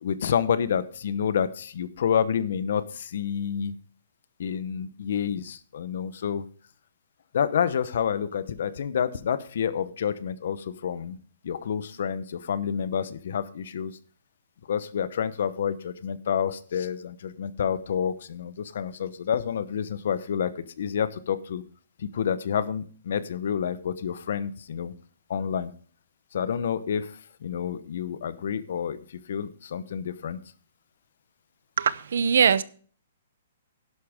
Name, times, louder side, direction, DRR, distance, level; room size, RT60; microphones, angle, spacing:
voice 1, 0.0-3.7 4.4-6.4 7.3-11.2 11.4-13.9 14.7-21.6 22.0-24.9 25.3-25.7 26.3-30.4, left 8 dB, 60° left, 0.9 m, -29 dB
voice 2, 31.8-32.6, right 7 dB, 75° right, 0.7 m, -21 dB
11.5 x 11.0 x 3.6 m
hypercardioid pair, 165°, 0 cm